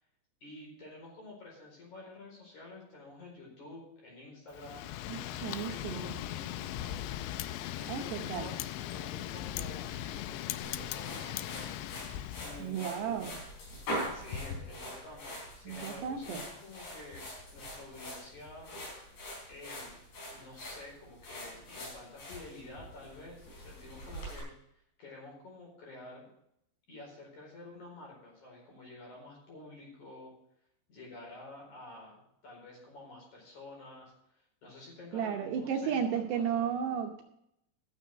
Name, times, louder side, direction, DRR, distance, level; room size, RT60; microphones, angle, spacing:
voice 1, 0.4-7.0 7.8-11.8 12.3-13.3 14.1-17.3 17.5-18.7 19.5-20.0 20.3-24.5 25.0-26.3 26.9-30.3 30.9-36.7, left 2 dB, 40° left, -2 dB, 5.6 m, -50 dB
Wind, 4.5-12.7, left 13 dB, 85° left, 2.6 m, -39 dB
voice 2, 5.1-6.1 7.9-8.5 12.6-13.4 15.7-16.4 35.1-37.2, right 7 dB, 75° right, 2 dB, 2.7 m, -34 dB
sound 1, 10.6-24.4, left 1 dB, 65° left, 6.2 m, -43 dB
13.0 x 7.1 x 6.5 m, 0.76 s
omnidirectional pair, 5.4 m